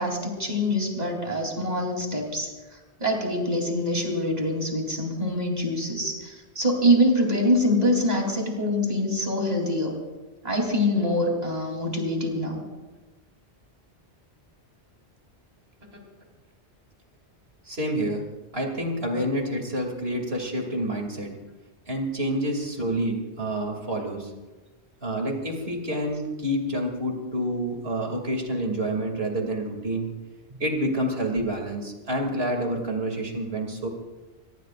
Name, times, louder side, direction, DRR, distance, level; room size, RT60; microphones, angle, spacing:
voice 1, 0.0-2.5 3.0-10.0 10.4-12.6, equal, 40° right, 1 dB, 3.7 m, -24 dB
voice 2, 17.6-18.2 18.5-21.4 21.9-24.3 25.0-30.1 30.6-33.9, right 1 dB, 65° right, 2 dB, 3.1 m, -28 dB
24.5 x 21.0 x 2.5 m, 1.2 s
omnidirectional pair, 1.1 m